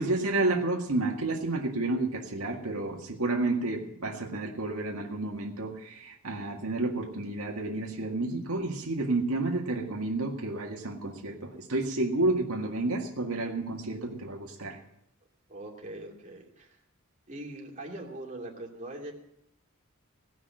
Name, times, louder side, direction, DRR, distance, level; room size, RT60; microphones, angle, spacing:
voice 1, 0.0-14.8, right 2 dB, 80° right, 0 dB, 2.0 m, -30 dB
voice 2, 15.5-16.8 17.3-19.1, right 1 dB, 35° right, -2 dB, 2.6 m, -41 dB
18.0 x 6.1 x 8.9 m, 0.79 s
head